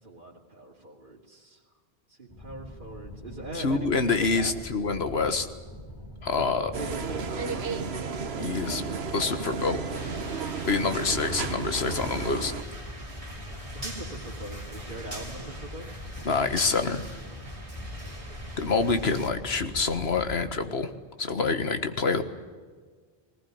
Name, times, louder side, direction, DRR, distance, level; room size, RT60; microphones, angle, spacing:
voice 1, 0.0-1.6 2.1-4.5 6.3-8.0 10.8-11.1 13.7-15.9 18.0-18.5, right 2 dB, 55° right, -5 dB, 2.9 m, -41 dB
sound 1, 2.3-20.4, left 1 dB, 20° left, 4.3 m, -42 dB
voice 2, 3.5-5.5 6.2-6.7 8.4-8.8 9.1-9.8 10.7-12.5 16.3-17.1 18.6-20.9 21.2-22.2, left 4 dB, 80° left, 9 dB, 1.8 m, -26 dB
sound 2, 6.7-12.6, right 5 dB, 80° right, 1.5 m, -33 dB
sound 3, 9.9-19.3, right 1 dB, 35° right, 2.9 m, -43 dB
20.0 x 18.5 x 9.5 m, 1.5 s
omnidirectional pair, 1.0 m